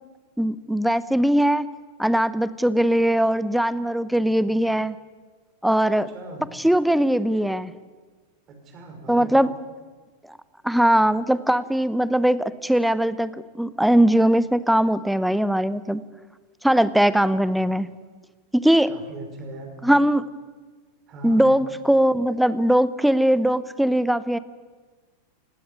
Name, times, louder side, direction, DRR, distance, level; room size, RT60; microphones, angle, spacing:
voice 1, 0.4-1.7 2.0-5.0 5.6-6.1 6.5-7.7 9.1-9.5 10.6-16.0 16.6-17.9 18.5-18.9 19.8-20.3 21.2-24.4, right 1 dB, ahead, 16 dB, 0.9 m, -20 dB
voice 2, 6.1-6.5 8.5-9.3 18.9-19.7 21.1-21.5, right 2 dB, 30° right, 4 dB, 5.8 m, -39 dB
18.5 x 16.0 x 9.8 m, 1.4 s
figure-of-eight pair, 90°, 0 cm